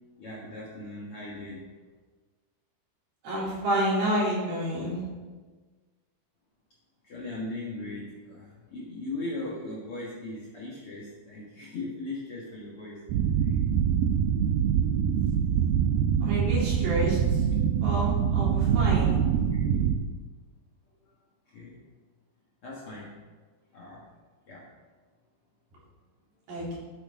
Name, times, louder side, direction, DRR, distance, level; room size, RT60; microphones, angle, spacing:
voice 1, 0.2-1.6 7.0-13.0 13.4-13.6 19.5-19.8 21.5-21.8 22.6-23.1 23.7-24.0 24.5-24.7, left 2 dB, 80° left, -5 dB, 1.2 m, -38 dB
voice 2, 3.2-5.0 16.2-17.4 17.8-19.2 26.5-26.7, equal, 60° right, -7 dB, 5.1 m, -29 dB
sound 1, 13.1-20.0, right 8 dB, 85° right, 2.1 m, -24 dB
12.0 x 8.6 x 3.7 m, 1.4 s
omnidirectional pair, 5.0 m